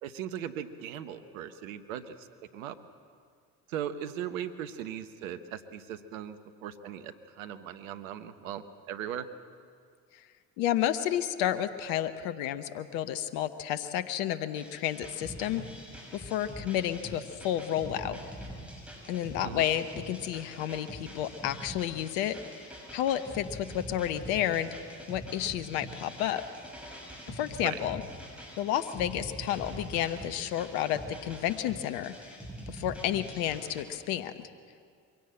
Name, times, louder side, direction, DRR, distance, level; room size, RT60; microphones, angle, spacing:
voice 1, 0.0-2.3 2.5-2.7 3.7-9.3 19.4-19.6 27.6-27.8, right 9 dB, 85° right, 11 dB, 1.0 m, -38 dB
voice 2, 10.6-15.6 16.1-18.2 19.1-24.8 25.1-26.4 27.3-28.0 28.6-32.3 32.7-34.3, left 11 dB, 75° left, 11 dB, 0.9 m, -31 dB
sound 1, 14.5-33.8, equal, 5° right, 6.8 m, -44 dB
23.0 x 16.5 x 7.7 m, 2.2 s
hypercardioid pair, 50°, 39 cm